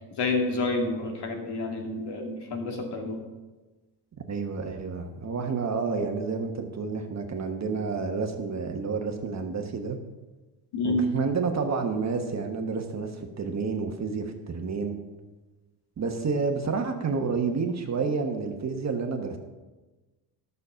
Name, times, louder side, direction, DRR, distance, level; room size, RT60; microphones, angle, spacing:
voice 1, 0.2-3.2 10.7-11.0, left 2 dB, 55° left, 1 dB, 2.5 m, -29 dB
voice 2, 4.3-10.0 10.8-13.1 13.4-15.0 16.0-19.4, right 4 dB, 35° right, 4 dB, 1.2 m, -29 dB
11.5 x 6.8 x 5.7 m, 1.2 s
cardioid pair, 115°, 47 cm